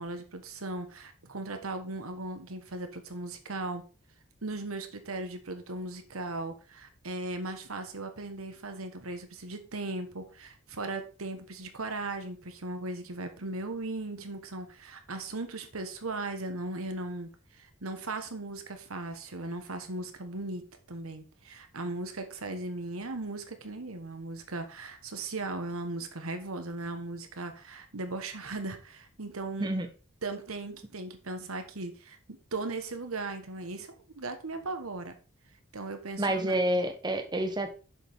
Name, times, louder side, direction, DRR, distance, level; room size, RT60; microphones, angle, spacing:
voice 1, 0.0-3.8 4.4-29.7 30.2-35.2 35.7-36.6, right 2 dB, 90° right, 7 dB, 1.3 m, -38 dB
voice 2, 36.2-37.7, right 1 dB, 20° right, 6 dB, 1.0 m, -28 dB
7.3 x 6.7 x 3.6 m, 0.35 s
head